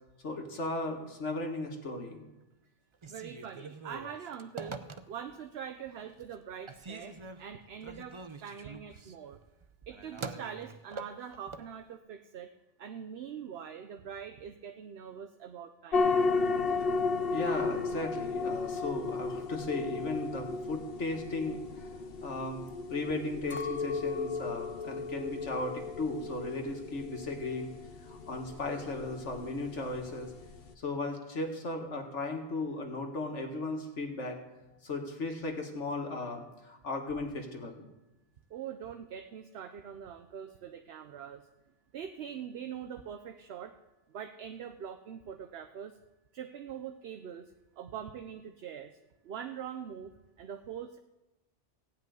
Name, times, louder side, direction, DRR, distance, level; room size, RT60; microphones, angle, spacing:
voice 1, 0.2-2.2 17.3-21.9 22.2-22.6 22.9-27.7 28.0-30.3 30.8-34.4 34.8-37.9, left 2 dB, 90° left, 3 dB, 2.0 m, -36 dB
Telephone, 2.9-5.4 5.9-6.4 6.7-11.7, right 4 dB, 35° right, 0.5 m, -45 dB
voice 2, 3.1-4.8 5.1-9.4 9.9-12.5 12.8-16.2 38.5-41.4 41.9-43.7 44.1-46.0 46.3-49.0 49.2-51.0, right 8 dB, 65° right, 7 dB, 0.9 m, -43 dB
sound 1, 15.9-30.7, left 4 dB, 55° left, 1.1 m, -35 dB
Chink clink, 23.5-27.9 28.1-28.9, left 5 dB, 40° left, 0.5 m, -39 dB
15.0 x 5.5 x 9.3 m, 1.0 s
omnidirectional pair, 1.2 m